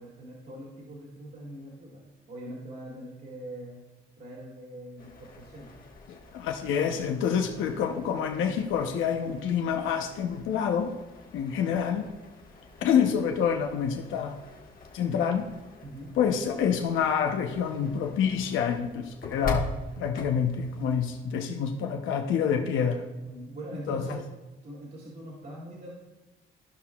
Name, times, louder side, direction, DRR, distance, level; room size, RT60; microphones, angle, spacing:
voice 1, 0.0-3.8 4.2-5.7 9.2-9.4 15.8-16.1 23.3-24.2 24.6-26.0, right 1 dB, 50° right, -5 dB, 2.3 m, -42 dB
sound 1, 5.0-21.2, left 2 dB, 45° left, 1.4 m, -43 dB
voice 2, 6.1-10.9 11.3-12.1 12.8-14.4 14.9-15.5 16.2-19.7 20.0-23.0 23.9-24.2, left 7 dB, 80° left, 3 dB, 0.8 m, -27 dB
14.0 x 5.6 x 2.3 m, 1.1 s
cardioid pair, 90°, 20 cm